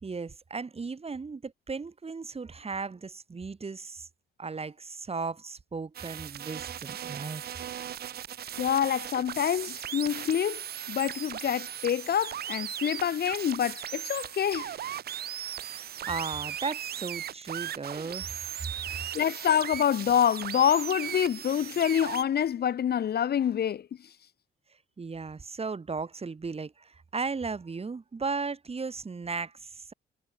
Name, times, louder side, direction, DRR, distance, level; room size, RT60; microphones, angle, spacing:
voice 1, 0.0-4.1 4.4-7.7 15.6-18.3 25.0-29.9, right 4 dB, 30° right, 4.1 m, -36 dB
sound 1, 5.9-22.2, right 10 dB, 50° right, 0.6 m, -38 dB
voice 2, 8.6-10.6 10.9-14.7 19.1-23.9, left 9 dB, 55° left, 1.0 m, -26 dB
cardioid pair, 90°, 20 cm